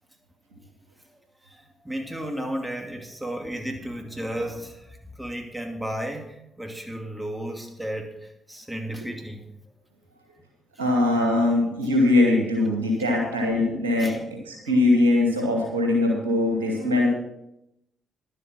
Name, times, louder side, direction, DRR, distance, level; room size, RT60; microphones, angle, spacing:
voice 1, 1.4-9.5 14.0-14.2 14.6-14.7, right 1 dB, 10° right, 3 dB, 2.6 m, -34 dB
voice 2, 10.8-14.1 14.4-17.1, left 2 dB, 90° right, -1 dB, 2.3 m, -21 dB
11.0 x 8.4 x 6.2 m, 0.84 s
hypercardioid pair, 45°, 0 cm